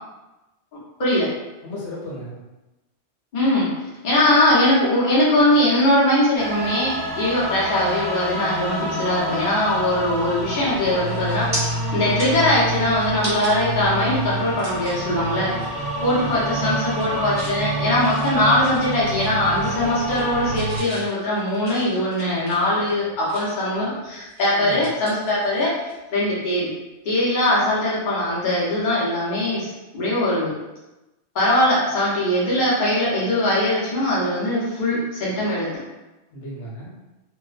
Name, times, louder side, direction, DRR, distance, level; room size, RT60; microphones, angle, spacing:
voice 1, 1.6-2.4 10.6-10.7 16.3-16.9 24.5-24.9 36.3-36.9, equal, 85° left, -5 dB, 1.0 m, -35 dB
voice 2, 3.3-3.7 4.0-11.7 11.9-15.5 16.0-25.7 26.1-26.7 27.0-30.5 31.3-35.7, left 1 dB, 50° left, -7 dB, 0.9 m, -21 dB
sound 1, 6.4-20.8, right 2 dB, 25° left, 0.6 m, -28 dB
sound 2, 11.1-11.6 12.0-13.5 14.0-14.1 14.6-15.1 15.5-15.7 16.0-16.4 16.8-17.6 18.0-19.3 19.6-20.3 20.5-23.7 24.1-26.0 26.2-26.4 28.3-28.5, right 1 dB, 20° right, 0.5 m, -36 dB
2.5 x 2.1 x 2.4 m, 1.0 s
omnidirectional pair, 1.2 m